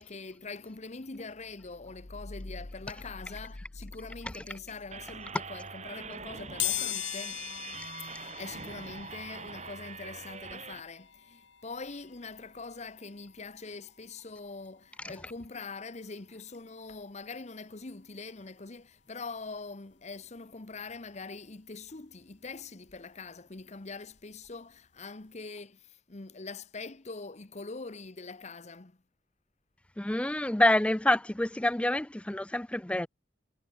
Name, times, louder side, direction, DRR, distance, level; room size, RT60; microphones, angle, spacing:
voice 1, 0.0-7.5 8.0-29.0, left 3 dB, 40° left, 1.0 m, -43 dB
sound 1, 4.9-10.8, right 5 dB, 40° right, 3.3 m, -43 dB
sound 2, 6.6-17.3 17.7-17.8 19.0-19.1 19.4-21.5 21.8-24.4 24.8-25.0 25.3-25.4, left 14 dB, 85° left, 2.4 m, -41 dB
voice 2, 30.0-33.1, left 1 dB, 5° left, 0.4 m, -27 dB
head